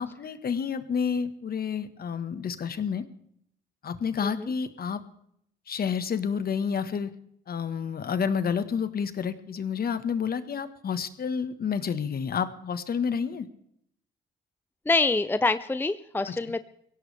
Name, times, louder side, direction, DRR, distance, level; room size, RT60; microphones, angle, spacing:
voice 1, 0.0-3.0 3.8-5.0 5.7-7.1 7.5-13.5, left 6 dB, 50° left, 11 dB, 1.5 m, -29 dB
voice 2, 14.9-16.6, left 3 dB, 10° left, 13 dB, 0.6 m, -26 dB
23.0 x 17.0 x 3.5 m, 0.71 s
cardioid pair, 90°, 20 cm